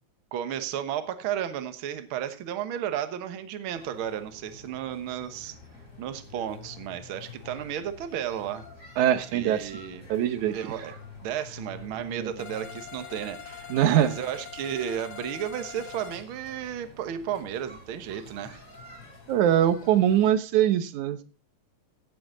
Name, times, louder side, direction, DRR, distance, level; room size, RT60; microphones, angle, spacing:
voice 1, 0.3-5.5 6.0-8.6 9.3-10.1 10.5-10.9 11.2-18.6, right 10 dB, 55° right, 10 dB, 1.7 m, -33 dB
sound 1, 3.7-20.3, left 3 dB, 25° left, 4.3 m, -49 dB
voice 2, 9.0-9.7 10.1-10.6 12.2-12.3 13.7-14.1 19.3-21.2, right 11 dB, 85° right, 12 dB, 2.4 m, -22 dB
sound 2, 12.4-16.2, left 8 dB, 55° left, 1.8 m, -43 dB
16.0 x 7.8 x 3.8 m, 0.33 s
omnidirectional pair, 3.3 m